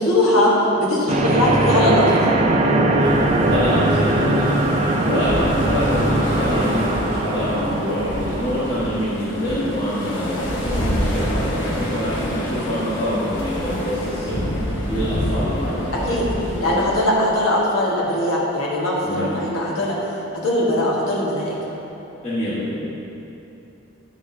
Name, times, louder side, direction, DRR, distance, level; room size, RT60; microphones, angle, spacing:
voice 1, 0.0-2.3 16.1-16.2 16.6-19.9 20.3-21.5, left 1 dB, 90° left, -5 dB, 1.5 m, -20 dB
sound 1, 1.1-9.1, right 1 dB, 35° right, 0.4 m, -20 dB
voice 2, 2.9-14.5 14.7-16.2 16.5-16.8 19.0-19.4 22.2-22.8, left 1 dB, 30° left, -14 dB, 1.5 m, -26 dB
sound 2, 3.0-16.7, equal, 60° left, 1.2 m, -27 dB
9.6 x 6.0 x 2.8 m, 2.9 s
head